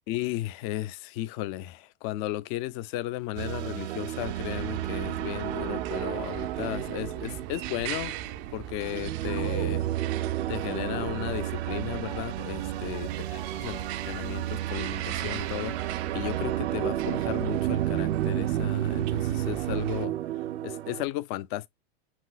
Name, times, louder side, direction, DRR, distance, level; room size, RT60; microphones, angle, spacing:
voice 1, 0.1-8.1 8.5-9.9 10.5-20.1 20.6-21.7, left 15 dB, 40° left, 0.5 m, -35 dB
sound 1, 3.4-21.1, right 13 dB, 85° right, 0.5 m, -31 dB
sound 2, 4.2-20.1, right 12 dB, 40° right, 0.4 m, -39 dB
5.9 x 2.7 x 2.4 m
supercardioid pair, 130°, 32 cm